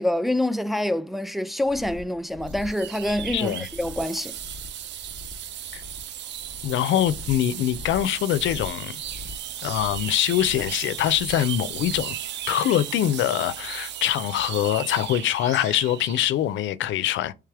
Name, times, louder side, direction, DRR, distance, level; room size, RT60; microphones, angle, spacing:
voice 1, 0.0-4.4, left 1 dB, ahead, 0.3 m, -26 dB
sound 1, 1.6-12.2, left 3 dB, 15° left, 1.0 m, -43 dB
sound 2, 2.5-16.3, right 10 dB, 65° right, 0.5 m, -36 dB
voice 2, 3.3-3.7 5.7-5.8 6.6-9.0 9.6-12.2 12.5-17.3, left 12 dB, 70° left, 0.5 m, -24 dB
3.3 x 3.3 x 3.5 m
cardioid pair, 90°, 20 cm